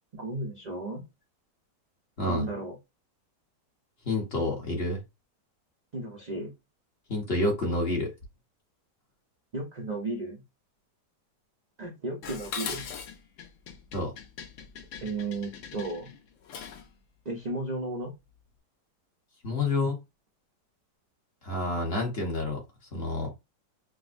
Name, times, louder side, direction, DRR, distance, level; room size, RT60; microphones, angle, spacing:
voice 1, 0.1-1.1 2.3-2.8 5.9-6.5 9.5-10.4 11.8-12.8 15.0-16.1 17.2-18.1, right 2 dB, 75° right, 0.3 m, -34 dB
voice 2, 4.0-5.0 7.1-8.1 13.9-14.1 19.4-20.0 21.4-22.6 22.9-23.3, left 2 dB, 45° left, 1.0 m, -28 dB
Dishes pots and pans, 12.2-16.9, left 7 dB, 65° left, 0.8 m, -41 dB
4.9 x 2.1 x 2.5 m
omnidirectional pair, 1.8 m